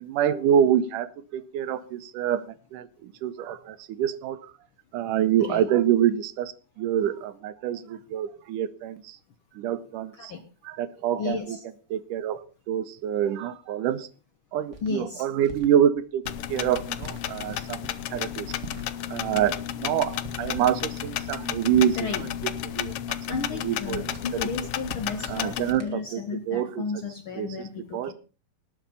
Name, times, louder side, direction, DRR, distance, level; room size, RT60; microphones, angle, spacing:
voice 1, 0.0-4.5 4.9-9.2 9.6-10.3 10.6-11.6 11.9-12.4 12.7-14.1 14.5-16.2 16.5-17.8 18.1-18.5 19.1-22.3 22.6-22.9 23.5-24.0 24.3-24.5 25.3-26.2 26.5-26.8 27.4-27.7 27.9-28.1, right 10 dB, 85° right, 13 dB, 2.5 m, -26 dB
voice 2, 11.2-11.6 14.8-15.2 22.0-22.3 23.3-28.1, left 4 dB, 65° left, 7 dB, 1.3 m, -33 dB
sound 1, 14.7-14.9 15.4-15.7 16.2-16.5 17.0-17.2 17.8-18.0 18.6-19.0 19.4-19.7 20.2-20.5 21.0-21.3 21.7-22.1 22.5-22.8 23.3-23.7 24.1-24.4 24.8-25.2 25.7-26.0, right 2 dB, 30° right, 1.5 m, -42 dB
sound 2, 16.3-25.7, left 11 dB, 90° left, 1.3 m, -33 dB
19.0 x 7.3 x 5.5 m, 0.36 s
omnidirectional pair, 3.7 m